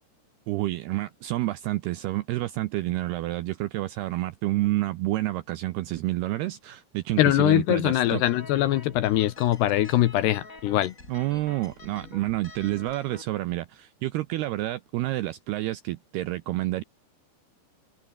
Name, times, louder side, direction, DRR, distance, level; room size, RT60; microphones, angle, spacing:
voice 1, 0.5-8.2 11.1-16.8, right 17 dB, 80° right, 2.3 m, -29 dB
voice 2, 7.2-10.9, left 14 dB, 75° left, 2.8 m, -22 dB
sound 1, 8.1-13.2, left 3 dB, 20° left, 3.9 m, -46 dB
omnidirectional pair, 5.5 m